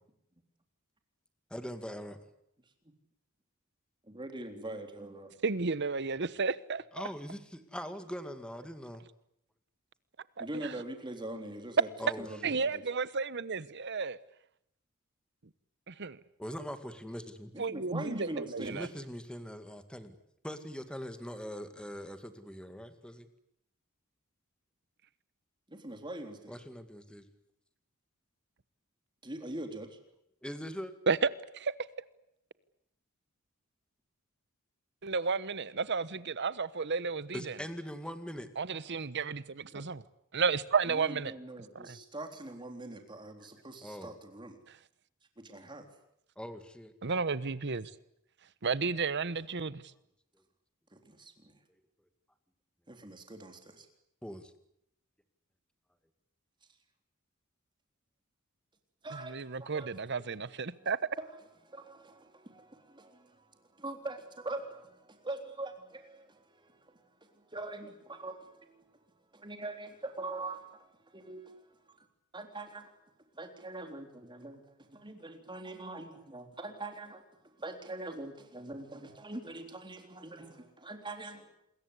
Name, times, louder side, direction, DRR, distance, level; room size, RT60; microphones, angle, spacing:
voice 1, 1.5-2.2 6.9-9.0 12.0-12.6 16.4-17.5 18.7-20.1 20.4-23.3 26.5-27.3 30.4-30.9 37.3-38.5 43.8-44.1 46.4-46.9 54.2-54.5, equal, 5° left, 2.1 m, -42 dB
voice 2, 4.0-5.3 10.4-11.9 12.2-12.8 17.5-18.8 25.7-26.6 29.2-30.0 39.7-39.8 40.9-44.6 45.4-45.9 50.9-51.5 52.9-53.9 59.0-59.3 59.6-59.9 61.2-61.4 61.6-68.8 69.3-72.1 72.3-72.9 73.3-77.2 77.6-81.5, right 2 dB, 20° right, 3.7 m, -43 dB
voice 3, 5.4-6.8 10.4-10.7 12.4-14.2 15.9-16.2 17.6-18.9 31.1-31.2 31.5-31.7 35.0-37.5 38.6-40.0 40.3-41.3 41.7-42.0 47.0-47.9 48.6-49.8 59.2-61.0, right 4 dB, 55° right, 1.0 m, -32 dB
28.0 x 22.0 x 8.3 m
head